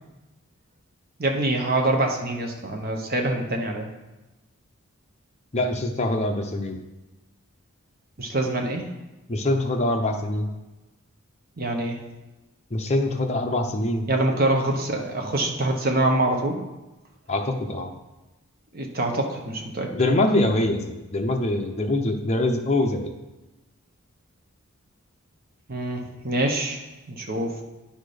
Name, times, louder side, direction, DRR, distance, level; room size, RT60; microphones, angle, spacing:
voice 1, 1.2-3.9 8.2-8.9 11.6-12.0 14.1-16.6 18.7-19.9 25.7-26.8 27.1-27.6, right 2 dB, 40° right, 2 dB, 1.0 m, -25 dB
voice 2, 5.5-6.8 9.3-10.5 12.7-14.1 17.3-17.9 19.9-23.1, left 1 dB, 30° left, 3 dB, 0.7 m, -24 dB
10.0 x 4.3 x 5.0 m, 1.1 s
head